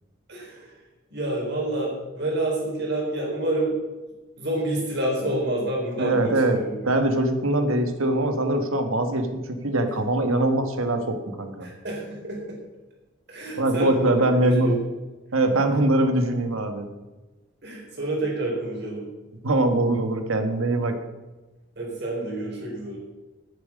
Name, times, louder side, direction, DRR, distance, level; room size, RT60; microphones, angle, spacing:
voice 1, 0.3-0.8 1.1-3.8 4.4-6.8 11.6-12.6 13.3-14.8 17.6-19.1 21.8-23.0, right 1 dB, 50° right, -2 dB, 4.3 m, -28 dB
voice 2, 6.0-11.7 13.6-14.8 15.3-16.9 19.4-20.9, right 1 dB, 85° right, 7 dB, 1.5 m, -22 dB
9.2 x 7.4 x 8.3 m, 1.2 s
head